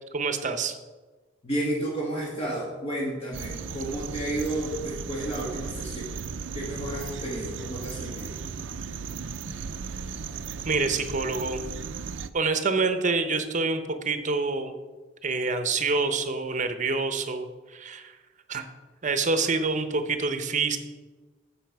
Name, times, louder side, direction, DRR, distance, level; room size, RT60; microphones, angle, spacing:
voice 1, 0.1-0.8 10.6-11.6 12.3-14.7 15.2-18.1 18.5-18.7 19.0-20.8, right 4 dB, 40° right, 9 dB, 0.8 m, -27 dB
voice 2, 1.4-6.1 6.5-8.3, right 1 dB, 30° left, -4 dB, 1.5 m, -32 dB
sound 1, 3.3-12.3, right 5 dB, 80° right, 0.4 m, -36 dB
9.1 x 7.0 x 4.6 m, 1.3 s
head